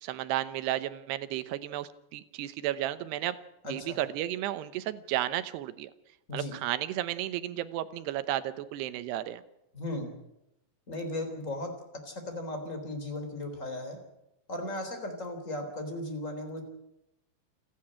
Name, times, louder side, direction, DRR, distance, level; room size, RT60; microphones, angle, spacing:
voice 1, 0.0-3.4 3.6-5.9 6.3-9.4, right 13 dB, 75° right, 13 dB, 2.9 m, -33 dB
voice 2, 3.6-4.0 6.3-6.5 9.7-10.1 10.9-11.7 12.0-14.0 14.5-16.6, left 1 dB, 20° left, 5 dB, 3.6 m, -36 dB
29.0 x 10.5 x 8.9 m, 0.86 s
omnidirectional pair, 5.0 m